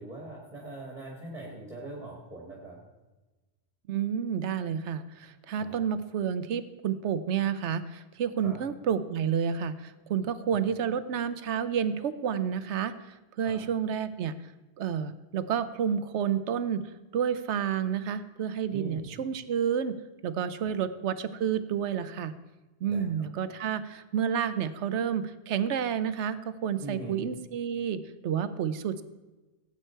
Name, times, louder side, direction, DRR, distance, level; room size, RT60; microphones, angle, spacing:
voice 1, 0.0-2.8 5.6-5.8 8.4-8.6 10.5-10.6 13.4-13.6 18.7-19.0 20.6-20.7 22.9-23.0 26.8-27.2, right 1 dB, 35° right, -2 dB, 2.2 m, -42 dB
voice 2, 3.9-12.9 13.4-14.4 14.8-16.8 17.1-20.0 20.2-22.3 22.8-29.0, right 8 dB, 80° right, 13 dB, 1.0 m, -30 dB
16.5 x 8.7 x 4.5 m, 1.2 s
omnidirectional pair, 1.2 m